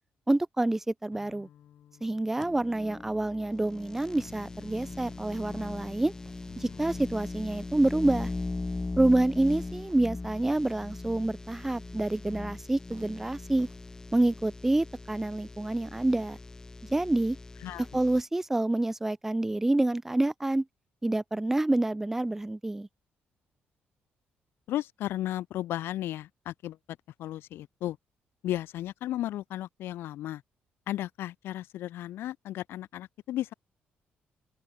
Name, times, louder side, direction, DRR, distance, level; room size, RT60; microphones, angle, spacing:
voice 1, 0.3-1.5 2.0-6.1 6.6-8.3 9.0-13.7 14.1-16.4 16.9-17.4 17.9-20.7 21.0-22.9, right 2 dB, 10° right, 0.5 m, -27 dB
sound 1, 1.1-7.2, left 10 dB, 65° left, 5.0 m, -55 dB
sound 2, 2.4-18.2, left 3 dB, 15° left, 1.5 m, -40 dB
sound 3, 6.2-14.4, right 6 dB, 40° right, 7.2 m, -63 dB
voice 2, 24.7-26.8 27.2-28.0 28.4-30.4 30.9-33.5, left 13 dB, 85° left, 0.7 m, -34 dB
open air
cardioid pair, 135°, 4 cm